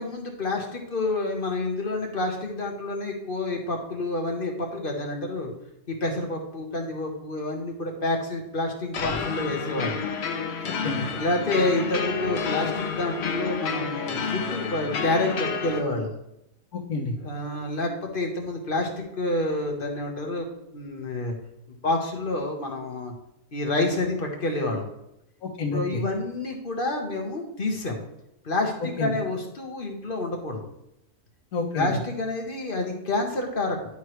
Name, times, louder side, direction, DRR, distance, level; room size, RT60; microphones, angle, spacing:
voice 1, 0.0-5.5 5.9-10.0 11.1-16.1 17.2-18.9 19.2-20.5 20.7-21.3 21.8-23.1 23.5-24.9 25.7-28.0 28.4-30.6 31.7-33.8, left 2 dB, 40° left, 2 dB, 1.3 m, -28 dB
sound 1, 8.9-15.8, left 5 dB, 55° left, 0.9 m, -30 dB
voice 2, 10.7-11.1 16.7-17.1 25.4-26.0 29.0-29.1 31.5-32.0, left 3 dB, 70° left, -3 dB, 1.4 m, -29 dB
11.0 x 4.6 x 3.1 m, 0.83 s
omnidirectional pair, 1.6 m